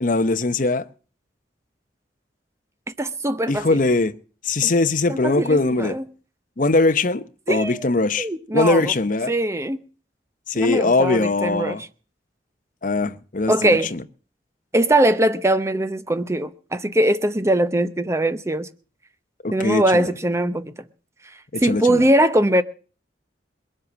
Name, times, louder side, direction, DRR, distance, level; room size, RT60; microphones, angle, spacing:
voice 1, 0.0-0.8 3.5-4.1 4.4-6.0 6.6-8.3 8.5-9.3 10.5-11.8 12.8-13.5 13.9-14.0 19.4-20.1 21.5-22.0, left 3 dB, 50° left, 0.8 m, -21 dB
voice 2, 3.0-3.8 4.6-4.7 5.1-6.0 7.5-7.8 8.2-8.9 9.3-9.8 10.5-11.9 13.5-13.9 14.7-18.7 19.5-20.7 21.6-22.6, right 1 dB, 15° right, 0.7 m, -21 dB
21.0 x 7.8 x 7.1 m
head